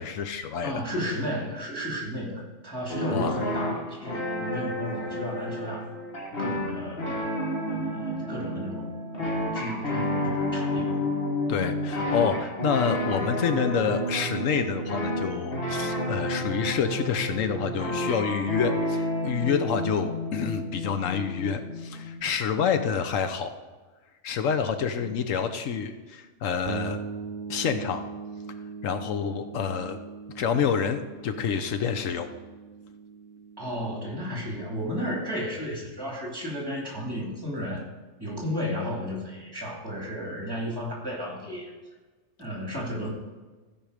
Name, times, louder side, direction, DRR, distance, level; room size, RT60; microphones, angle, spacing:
voice 1, 0.0-0.8 3.1-3.4 11.5-23.5 24.2-27.0 27.5-28.0 28.8-30.0 30.4-32.3, left 7 dB, 85° left, 8 dB, 1.2 m, -28 dB
voice 2, 0.6-5.9 6.4-7.2 7.7-8.9 9.5-11.0 33.6-37.8 38.2-41.7 42.4-43.1, equal, 15° right, -2 dB, 2.7 m, -33 dB
sound 1, 2.9-22.2, left 1 dB, 50° left, 1.8 m, -30 dB
sound 2, 26.7-36.3, right 6 dB, 55° right, 0.6 m, -41 dB
15.5 x 5.3 x 5.0 m, 1.3 s
omnidirectional pair, 1.3 m